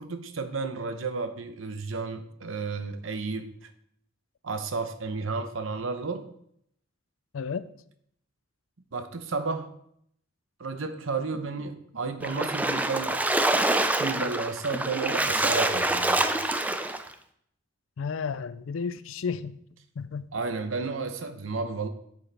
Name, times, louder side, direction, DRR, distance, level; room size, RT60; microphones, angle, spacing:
voice 1, 0.0-3.5 4.4-6.3 8.9-9.7 10.6-13.2 13.8-16.3 20.3-21.9, right 4 dB, 80° right, 9 dB, 0.8 m, -32 dB
voice 2, 7.3-7.7 18.0-19.6 20.0-20.3, left 5 dB, 85° left, 15 dB, 0.4 m, -32 dB
Splash splatter, 12.2-17.1, right 2 dB, 10° right, 0.4 m, -26 dB
9.0 x 7.0 x 3.4 m, 0.70 s
head